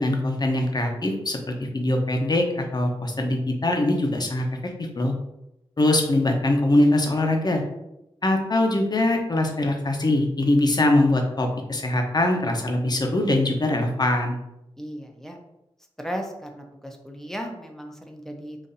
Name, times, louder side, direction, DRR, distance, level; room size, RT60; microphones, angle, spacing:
voice 1, 0.0-4.5 4.8-5.1 5.8-7.6 8.2-14.4, left 1 dB, 40° left, 3 dB, 0.7 m, -22 dB
voice 2, 14.8-15.4 16.0-18.6, equal, 5° left, 2 dB, 0.6 m, -35 dB
4.0 x 2.5 x 2.6 m, 0.88 s
cardioid pair, 45°, 11 cm